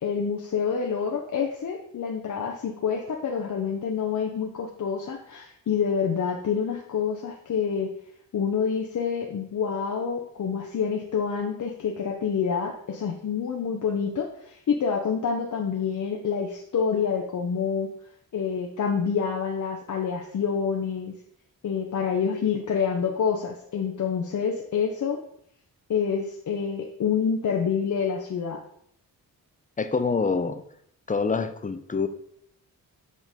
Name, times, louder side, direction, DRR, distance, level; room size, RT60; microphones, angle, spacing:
voice 1, 0.0-7.9 8.3-17.9 18.3-21.1 21.6-25.2 25.9-28.6, left 6 dB, 55° left, 2 dB, 0.7 m, -27 dB
voice 2, 29.8-30.6 31.1-32.1, left 4 dB, 20° left, 10 dB, 0.6 m, -26 dB
7.3 x 4.0 x 3.6 m, 0.70 s
cardioid pair, 75°, 36 cm